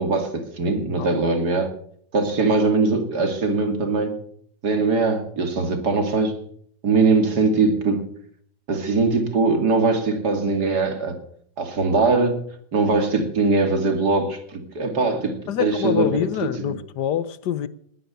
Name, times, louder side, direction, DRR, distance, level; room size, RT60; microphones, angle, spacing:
voice 1, 0.0-1.7 2.1-4.2 4.6-6.4 6.8-8.1 8.7-11.2 11.6-12.4 12.7-16.1, right 3 dB, 55° right, 3.0 m, -21 dB
voice 2, 15.5-17.7, left 10 dB, 65° left, 1.4 m, -25 dB
20.0 x 10.0 x 6.8 m
omnidirectional pair, 2.1 m